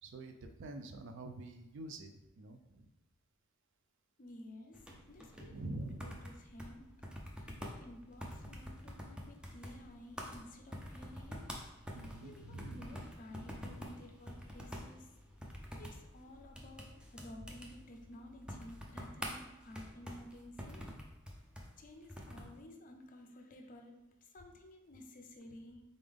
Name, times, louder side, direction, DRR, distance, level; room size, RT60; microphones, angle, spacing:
voice 1, 0.0-2.9 5.4-6.2 11.9-12.9, right 2 dB, 60° right, 6 dB, 0.4 m, -46 dB
voice 2, 4.2-6.9 7.3-11.5 12.2-15.1 15.8-20.9 21.8-25.8, left 1 dB, 40° left, 5 dB, 0.5 m, -53 dB
sound 1, 4.7-22.6, equal, 5° right, 0.5 m, -48 dB
3.8 x 3.5 x 3.5 m, 0.90 s
head